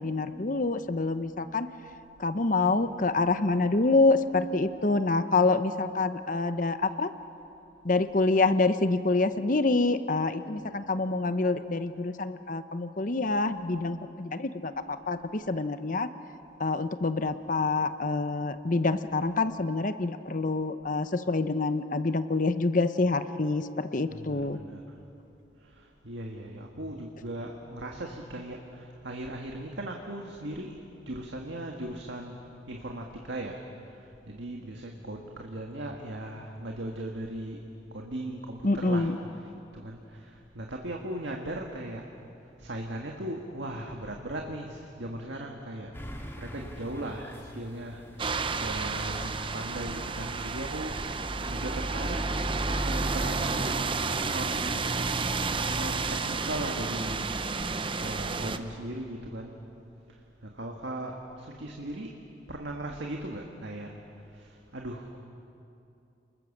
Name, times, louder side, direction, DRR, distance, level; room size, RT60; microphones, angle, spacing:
voice 1, 0.0-1.7 2.2-7.1 7.8-16.1 16.6-24.6 38.6-39.2, left 3 dB, 45° left, 11 dB, 0.8 m, -26 dB
voice 2, 2.3-2.9 24.1-25.0 25.6-30.8 31.1-37.6 37.9-39.1 39.7-42.0 42.4-52.4 52.8-55.0 55.7-57.6 58.0-59.6 60.1-62.1 62.5-65.2, right 1 dB, 70° right, 1 dB, 1.8 m, -38 dB
sound 1, 45.9-56.3, equal, 15° left, 2.0 m, -46 dB
sound 2, 48.2-58.6, right 4 dB, 25° right, 0.8 m, -31 dB
29.5 x 21.0 x 7.4 m, 2.8 s
head